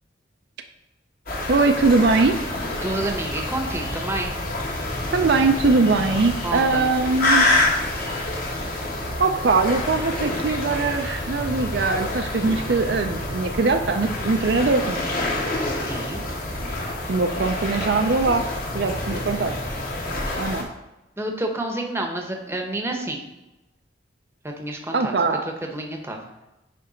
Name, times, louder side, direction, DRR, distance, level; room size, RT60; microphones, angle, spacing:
sound 1, 1.3-20.6, left 2 dB, 50° left, 1.5 m, -27 dB
voice 1, 1.5-2.4 5.1-7.6 9.2-15.1 17.1-18.4 18.7-19.6 20.4-20.7 24.9-25.4, right 3 dB, 55° right, 5 dB, 0.4 m, -21 dB
voice 2, 2.8-4.3 6.4-6.9 15.9-16.2 21.2-23.2 24.6-25.1 25.6-26.2, right 1 dB, 15° right, 2 dB, 0.8 m, -29 dB
9.5 x 3.4 x 5.0 m, 0.98 s
head